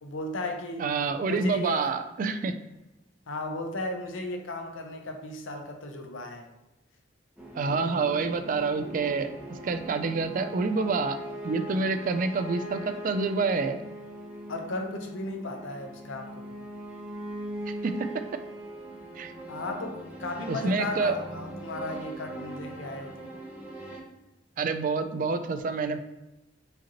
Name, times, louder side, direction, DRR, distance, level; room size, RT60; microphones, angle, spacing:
voice 1, 0.0-0.9 1.2-1.9 3.3-6.5 14.5-16.6 19.5-23.3, left 2 dB, 85° left, 4 dB, 0.7 m, -35 dB
voice 2, 0.8-2.5 7.5-11.2 11.4-13.8 17.7-18.1 19.1-19.3 20.5-21.2 24.6-26.0, right 4 dB, 45° right, 9 dB, 0.3 m, -28 dB
sound 1, 7.4-24.0, right 1 dB, 10° right, 0.8 m, -40 dB
4.9 x 2.9 x 2.9 m, 0.99 s
head